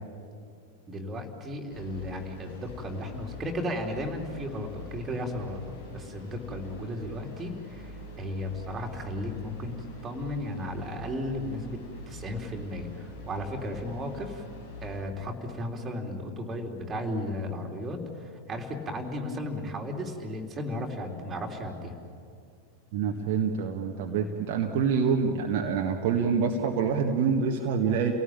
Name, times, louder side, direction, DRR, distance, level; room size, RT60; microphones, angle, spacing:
voice 1, 0.9-11.8 12.1-14.4 14.8-22.0, left 1 dB, 20° right, 1 dB, 3.6 m, -35 dB
sound 1, 1.7-15.0, left 1 dB, 60° left, 5.7 m, -45 dB
voice 2, 22.9-28.1, right 6 dB, 50° right, 1 dB, 1.7 m, -26 dB
29.5 x 18.0 x 8.9 m, 2.3 s
figure-of-eight pair, 90°, 0 cm